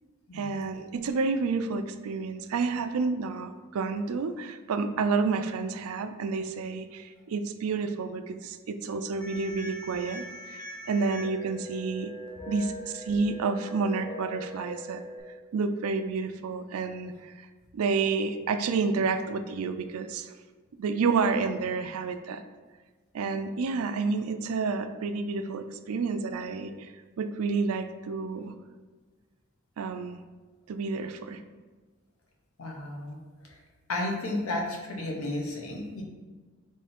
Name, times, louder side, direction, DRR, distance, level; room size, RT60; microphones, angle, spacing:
voice 1, 0.3-12.1 12.5-15.0 15.5-17.5 17.7-20.3 20.8-22.4 23.1-26.9 27.2-28.5 29.8-30.2 30.7-31.4, right 4 dB, 90° right, 9 dB, 0.4 m, -30 dB
sound 1, 9.2-15.2, equal, 20° left, 0.8 m, -42 dB
voice 2, 32.6-33.2 33.5-33.6 33.9-36.0, left 1 dB, 80° left, -1 dB, 1.0 m, -33 dB
3.6 x 3.3 x 4.2 m, 1.4 s
head